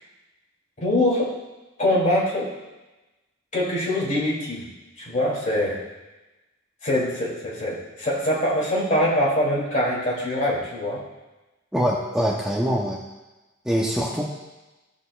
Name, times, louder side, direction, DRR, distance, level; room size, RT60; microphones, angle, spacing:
voice 1, 0.8-1.3 1.8-2.5 3.5-4.7 5.0-5.8 6.8-11.0, left 1 dB, 35° left, -5 dB, 2.8 m, -23 dB
voice 2, 11.7-13.0 13.6-14.2, equal, 5° right, -4 dB, 0.8 m, -23 dB
16.5 x 6.5 x 2.4 m, 1.1 s
head